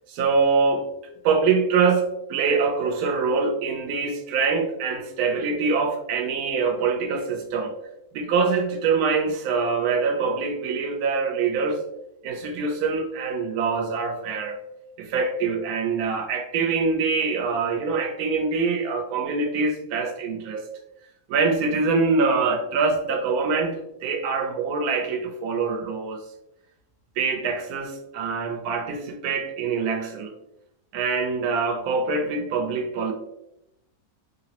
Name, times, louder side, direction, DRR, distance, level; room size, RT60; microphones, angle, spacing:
voice 1, 0.1-0.9 1.2-7.7 8.1-11.8 12.2-14.6 15.0-20.7 21.3-26.2 27.2-30.4 30.9-33.1, right 4 dB, 80° right, 3 dB, 1.1 m, -24 dB
3.0 x 2.0 x 2.8 m, 0.85 s
omnidirectional pair, 1.6 m